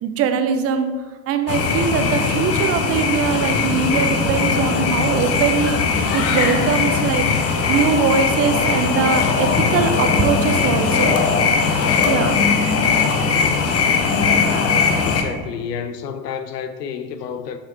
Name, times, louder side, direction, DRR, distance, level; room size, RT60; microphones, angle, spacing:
voice 1, 0.0-0.9 1.3-7.3 7.7-11.2 12.0-12.4, right 6 dB, 30° right, 0.6 m, -21 dB
sound 1, 1.5-15.2, left 5 dB, 30° left, 0.8 m, -19 dB
voice 2, 15.0-17.6, left 7 dB, 75° left, 0.6 m, -30 dB
7.2 x 6.0 x 2.8 m
figure-of-eight pair, 75°, 49 cm